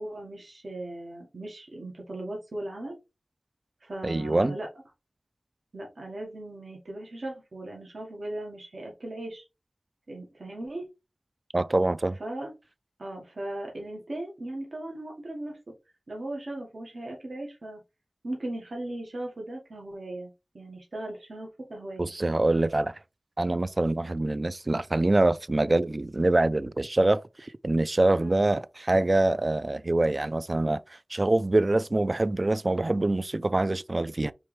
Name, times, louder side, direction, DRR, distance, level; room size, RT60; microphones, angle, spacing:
voice 1, 0.0-3.0 3.8-4.7 5.7-9.4 10.1-10.8 12.2-12.5 13.0-15.6 16.1-17.8 18.2-22.1 28.1-28.4, right 1 dB, 75° right, 1.4 m, -38 dB
voice 2, 4.0-4.6 11.5-12.2 22.0-22.9 23.4-30.8 31.1-34.3, right 2 dB, 40° right, 0.3 m, -25 dB
4.5 x 3.1 x 3.2 m
wide cardioid pair, 65°, 0 cm